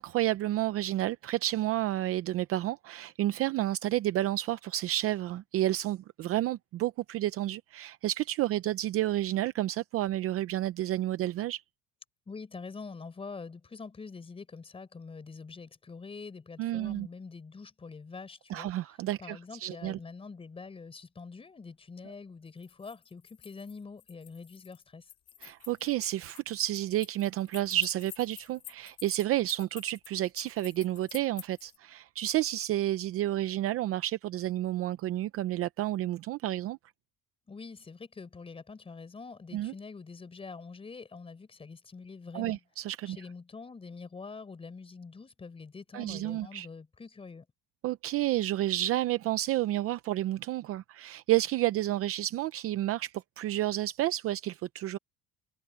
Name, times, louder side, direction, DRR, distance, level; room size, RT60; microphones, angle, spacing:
voice 1, 0.0-11.6 16.6-17.1 18.5-20.0 25.4-36.8 39.5-39.7 42.3-43.2 45.9-46.7 47.8-55.0, right 14 dB, 40° right, 0.6 m, -30 dB
voice 2, 12.3-18.7 19.2-25.0 37.5-42.6 43.1-47.5, left 4 dB, 15° left, 4.4 m, -45 dB
sound 1, 22.5-31.8, left 12 dB, 45° left, 4.5 m, -50 dB
cardioid pair, 165°, 35 cm